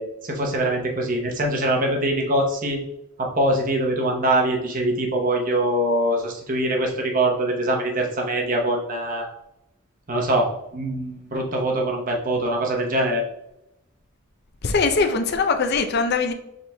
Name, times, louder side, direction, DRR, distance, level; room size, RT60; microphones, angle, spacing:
voice 1, 0.0-2.8 3.2-9.3 10.1-13.2, right 1 dB, 40° right, 1 dB, 0.8 m, -23 dB
voice 2, 14.6-16.3, left 4 dB, 50° left, 7 dB, 0.5 m, -21 dB
5.1 x 4.2 x 2.2 m, 0.86 s
head